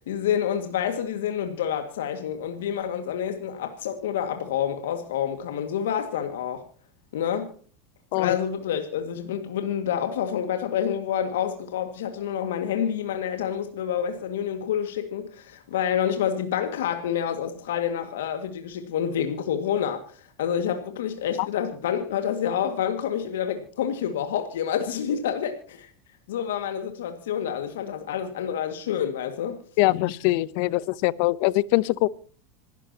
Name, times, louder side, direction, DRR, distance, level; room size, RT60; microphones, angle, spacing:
voice 1, 0.1-6.6 7.1-7.5 8.1-25.9 26.3-29.6, left 9 dB, 85° left, 2.0 m, -28 dB
voice 2, 29.8-32.1, left 19 dB, 65° left, 0.7 m, -22 dB
26.5 x 13.0 x 2.9 m
hypercardioid pair, 105°, 0 cm